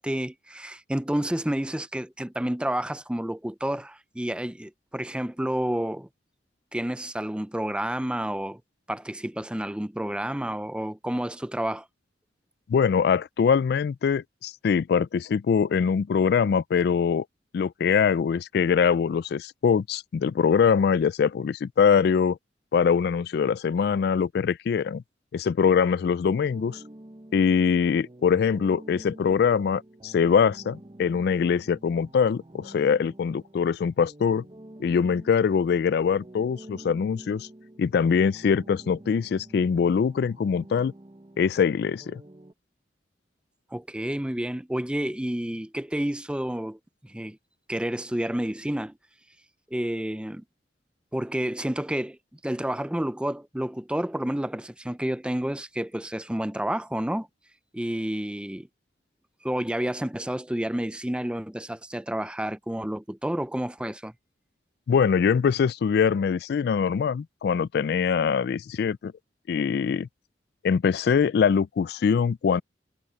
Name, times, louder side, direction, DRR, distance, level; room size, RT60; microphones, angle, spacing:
voice 1, 0.0-6.1 6.7-8.6 8.9-11.9 43.7-47.4 47.7-49.0 49.7-50.4 51.1-57.3 57.7-58.7 59.4-64.1, right 1 dB, 5° right, 0.5 m, -30 dB
voice 2, 12.7-17.2 17.5-22.4 22.7-25.0 25.3-26.8 27.3-34.4 34.8-37.5 37.8-40.9 41.4-42.2 64.9-69.1 69.5-70.1 70.6-72.6, left 6 dB, 60° left, 0.3 m, -23 dB
sound 1, 26.2-42.5, right 1 dB, 25° right, 0.9 m, -48 dB
head